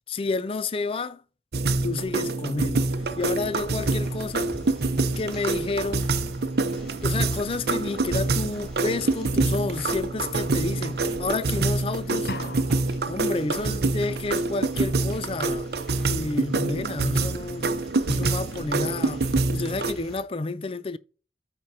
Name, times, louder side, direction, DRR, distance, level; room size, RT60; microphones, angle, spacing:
voice 1, 0.1-1.2 1.8-2.9 3.2-4.5 5.2-6.1 7.0-12.3 13.1-15.7 16.1-17.7 18.1-21.0, left 3 dB, 30° left, 0.4 m, -30 dB
sound 1, 1.5-19.9, right 3 dB, 65° right, 0.7 m, -26 dB
sound 2, 2.8-20.2, equal, ahead, 3.4 m, -45 dB
sound 3, 12.3-13.3, left 2 dB, 60° left, 0.9 m, -36 dB
13.5 x 4.5 x 2.7 m
head